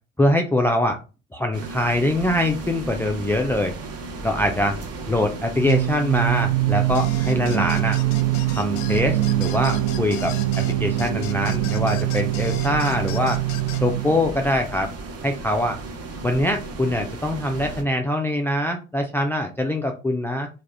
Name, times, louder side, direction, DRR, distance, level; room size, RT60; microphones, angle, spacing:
voice 1, 0.2-1.0 1.3-3.7 4.2-4.8 5.1-8.0 8.5-13.4 13.8-14.9 15.2-15.8 16.2-20.5, left 1 dB, 5° left, 4 dB, 0.4 m, -23 dB
sound 1, 1.5-17.8, right 3 dB, 40° right, 0.9 m, -35 dB
Singing, 5.5-14.5, right 16 dB, 60° right, 0.5 m, -24 dB
sound 2, 6.9-13.8, left 12 dB, 60° left, 0.5 m, -38 dB
3.5 x 2.3 x 3.2 m, 0.31 s
figure-of-eight pair, 50°, 38 cm